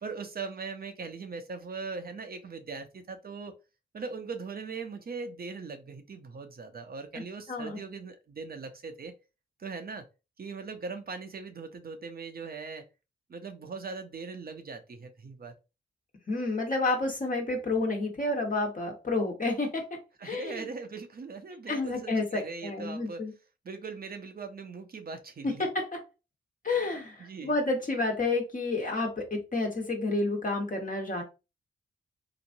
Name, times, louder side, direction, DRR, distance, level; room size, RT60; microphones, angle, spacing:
voice 1, 0.0-3.6 3.9-9.1 9.6-10.1 10.4-12.9 13.3-15.5 20.2-23.2 23.6-25.7 27.2-27.6, right 4 dB, 50° right, 0.7 m, -40 dB
voice 2, 7.5-7.8 16.3-19.9 20.2-20.7 21.7-23.3 25.4-25.9 26.6-31.2, left 2 dB, 40° left, 1.3 m, -30 dB
2.9 x 2.5 x 2.6 m
supercardioid pair, 45°, 20 cm